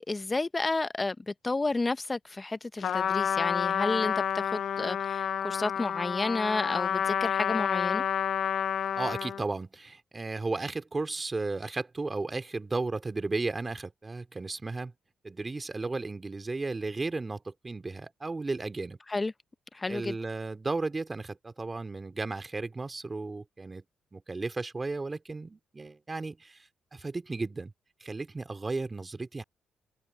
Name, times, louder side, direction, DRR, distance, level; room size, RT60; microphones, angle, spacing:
voice 1, 0.0-8.0 19.1-19.3 19.7-20.1, left 3 dB, 25° left, 0.7 m, -31 dB
Trumpet, 2.8-9.4, left 8 dB, 65° left, 0.3 m, -29 dB
voice 2, 9.0-14.9 15.2-19.0 19.9-23.8 24.1-27.7 28.0-29.4, right 3 dB, 25° right, 2.6 m, -34 dB
cardioid pair, 80°, 0 cm